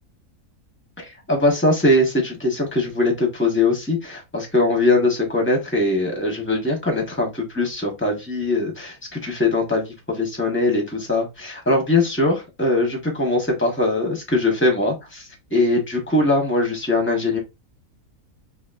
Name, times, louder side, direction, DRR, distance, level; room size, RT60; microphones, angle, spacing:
voice 1, 1.0-15.2 15.5-17.4, left 2 dB, 10° left, 1 dB, 1.2 m, -21 dB
4.1 x 3.1 x 2.5 m, 0.23 s
omnidirectional pair, 1.6 m